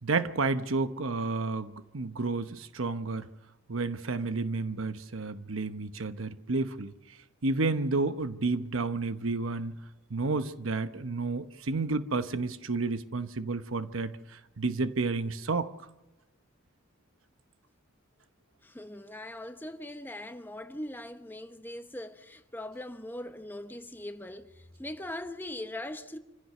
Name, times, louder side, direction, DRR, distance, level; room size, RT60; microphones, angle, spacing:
voice 1, 0.0-3.3 3.7-6.9 7.4-9.7 10.1-15.7, right 3 dB, 80° right, 0.9 m, -31 dB
voice 2, 18.6-26.2, left 1 dB, 10° left, 1.0 m, -41 dB
25.5 x 15.5 x 6.6 m
head